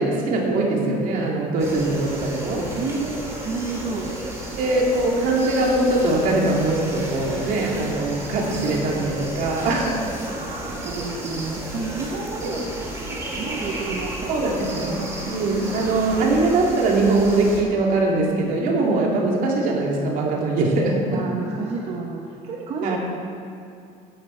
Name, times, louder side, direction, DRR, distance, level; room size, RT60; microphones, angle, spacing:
voice 1, 0.0-2.7 4.6-9.9 12.4-12.5 14.3-21.4 22.8-23.0, right 2 dB, 60° right, -1 dB, 2.3 m, -22 dB
sound 1, 1.6-17.6, right 1 dB, 20° right, 2.1 m, -33 dB
voice 2, 2.8-4.2 10.2-12.7 13.0-15.1 21.1-23.0, right 4 dB, 40° right, -1 dB, 1.0 m, -31 dB
13.5 x 10.0 x 4.4 m, 2.5 s
cardioid pair, 160°, 16 cm